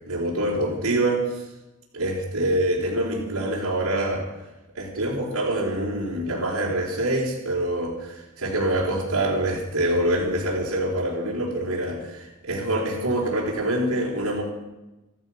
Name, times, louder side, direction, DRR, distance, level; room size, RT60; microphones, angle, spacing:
voice 1, 0.1-1.4 1.9-4.2 4.7-14.4, right 1 dB, 80° right, -5 dB, 4.5 m, -25 dB
14.5 x 13.5 x 6.4 m, 1.0 s
head